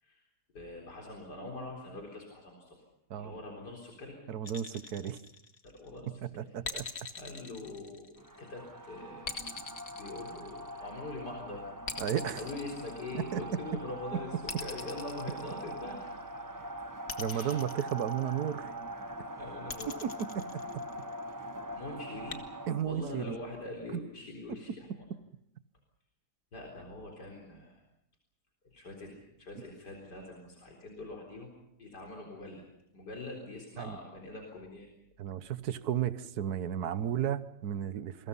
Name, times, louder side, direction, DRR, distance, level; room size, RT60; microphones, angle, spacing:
voice 1, 0.5-2.8 3.2-4.2 5.6-6.5 7.2-9.4 9.9-11.7 12.3-16.3 17.3-17.6 19.4-19.9 21.8-22.5 22.8-25.0 26.5-27.8 28.7-31.5 31.8-32.6 32.9-34.9, left 2 dB, 90° left, 1 dB, 4.6 m, -43 dB
voice 2, 4.3-5.2 6.2-6.9 12.0-12.4 13.1-13.4 17.2-18.8 20.0-20.6 22.7-23.4 23.9-24.0 33.8-34.0 35.2-38.3, right 9 dB, 70° right, 13 dB, 1.6 m, -34 dB
sound 1, 4.4-5.9 6.6-8.5 9.2-11.0 11.9-13.6 14.5-16.1 17.1-18.6 19.7-21.2 22.3-22.4, left 4 dB, 60° left, 2.3 m, -42 dB
sound 2, 8.2-22.8, right 1 dB, 15° right, 1.0 m, -43 dB
28.5 x 23.5 x 5.6 m, 0.76 s
omnidirectional pair, 1.7 m